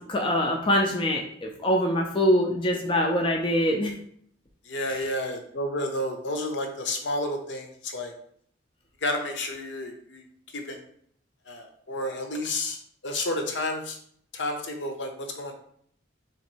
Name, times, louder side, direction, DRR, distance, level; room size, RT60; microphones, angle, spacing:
voice 1, 0.1-3.9 4.9-5.0, equal, 25° left, 1 dB, 0.5 m, -24 dB
voice 2, 4.7-8.1 9.0-10.2 10.5-10.8 11.5-14.0 14.3-15.5, left 1 dB, 65° left, 4 dB, 0.8 m, -31 dB
3.6 x 3.1 x 4.5 m, 0.64 s
head